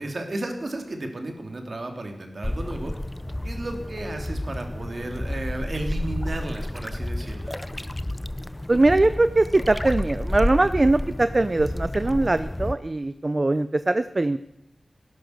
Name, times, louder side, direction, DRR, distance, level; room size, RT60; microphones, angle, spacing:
voice 1, 0.0-2.9 3.4-7.5, right 2 dB, 60° right, 4 dB, 3.1 m, -33 dB
sound 1, 2.4-12.7, left 1 dB, 20° left, 0.7 m, -31 dB
voice 2, 8.7-14.4, right 2 dB, 40° right, 12 dB, 0.6 m, -21 dB
16.5 x 12.0 x 6.6 m, 0.83 s
wide cardioid pair, 60°, 0 cm